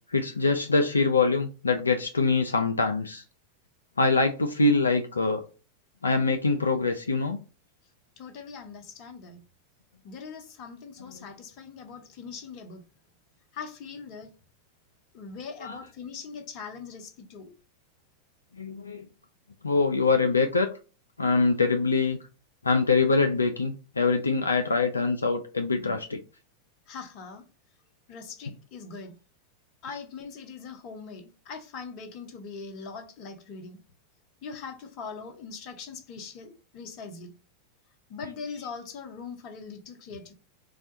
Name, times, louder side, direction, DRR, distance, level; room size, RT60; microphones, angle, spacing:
voice 1, 0.1-3.2 4.0-5.4 6.0-7.4 15.6-15.8 18.6-19.0 19.6-20.7 21.2-22.2 22.6-26.2, left 3 dB, 80° left, 0.3 m, -24 dB
voice 2, 8.2-9.4 10.0-12.9 13.5-14.3 15.1-17.5 26.9-27.4 28.1-29.2 29.8-33.8 34.4-37.3 38.1-40.3, left 5 dB, 40° left, 0.7 m, -41 dB
4.0 x 2.2 x 2.7 m
figure-of-eight pair, 90°, 0 cm